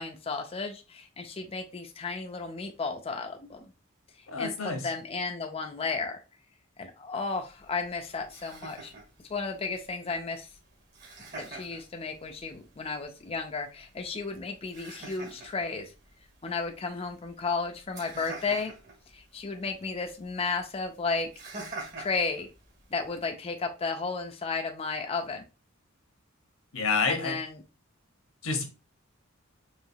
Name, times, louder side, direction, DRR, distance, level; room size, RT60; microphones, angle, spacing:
voice 1, 0.0-3.7 4.1-6.2 6.8-8.9 9.3-10.5 11.4-15.9 16.4-18.7 19.1-21.3 22.0-22.5 22.9-25.4 27.1-27.6, left 4 dB, 30° left, 4 dB, 0.4 m, -33 dB
voice 2, 4.3-4.8 26.7-27.4 28.4-28.6, left 4 dB, 85° left, 4 dB, 1.1 m, -28 dB
Laughter, 7.3-23.3, right 2 dB, 55° right, 1.9 m, -48 dB
4.8 x 3.1 x 2.7 m, 0.30 s
head